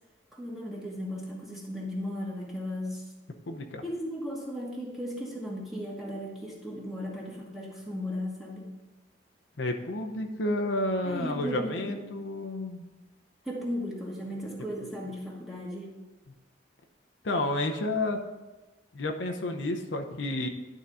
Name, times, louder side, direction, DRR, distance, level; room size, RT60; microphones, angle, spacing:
voice 1, 0.3-3.0 3.8-8.7 11.0-12.0 13.4-15.9, equal, ahead, -4 dB, 1.3 m, -36 dB
voice 2, 3.5-3.8 9.6-12.8 17.2-18.2 18.9-20.5, left 1 dB, 75° left, 4 dB, 0.8 m, -30 dB
11.0 x 3.9 x 5.6 m, 1.1 s
head